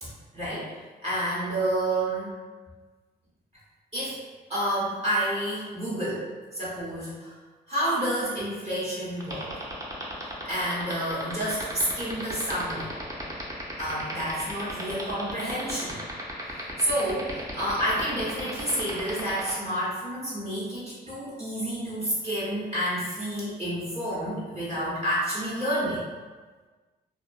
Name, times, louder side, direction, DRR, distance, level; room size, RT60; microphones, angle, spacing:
voice 1, 0.3-0.7 1.0-2.4 3.9-4.2 4.5-7.3 7.7-9.5 10.4-12.9 13.8-16.0 16.8-26.0, right 1 dB, 35° right, -9 dB, 1.0 m, -29 dB
sound 1, 9.2-19.5, right 1 dB, 20° right, 0.5 m, -35 dB
2.3 x 2.2 x 2.5 m, 1.4 s
cardioid pair, 80°, 18 cm